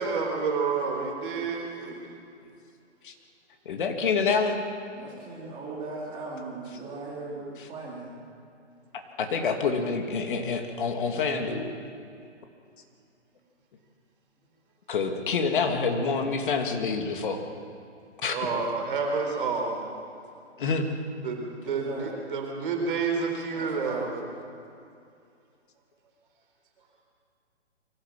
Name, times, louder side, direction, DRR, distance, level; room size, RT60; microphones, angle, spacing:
voice 1, 0.0-2.1 18.3-19.9 21.2-24.2, right 4 dB, 45° right, 2 dB, 4.2 m, -29 dB
voice 2, 3.7-4.6 9.2-11.7 14.9-17.4 18.2-18.4 20.6-20.9, left 5 dB, 45° left, 4 dB, 2.5 m, -27 dB
voice 3, 4.9-8.2 21.6-22.1 23.5-24.1, right 3 dB, 15° right, -5 dB, 3.2 m, -38 dB
24.0 x 15.0 x 7.5 m, 2.5 s
hypercardioid pair, 150°, 35 cm